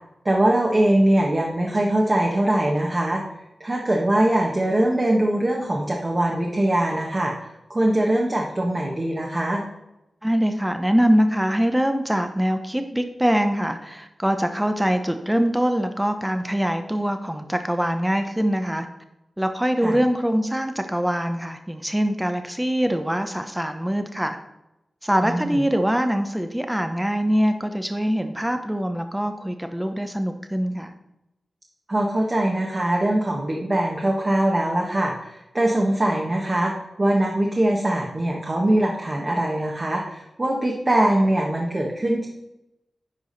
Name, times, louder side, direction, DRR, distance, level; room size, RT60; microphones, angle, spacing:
voice 1, 0.2-3.2 3.6-7.3 7.7-9.6 19.8-20.0 25.2-25.6 31.9-36.7 37.0-42.3, right 1 dB, 30° right, -1 dB, 1.3 m, -22 dB
voice 2, 10.2-18.9 19.4-24.4 25.0-30.9, equal, 10° right, 7 dB, 0.8 m, -23 dB
10.5 x 4.8 x 4.1 m, 0.90 s
cardioid pair, 60°, 0 cm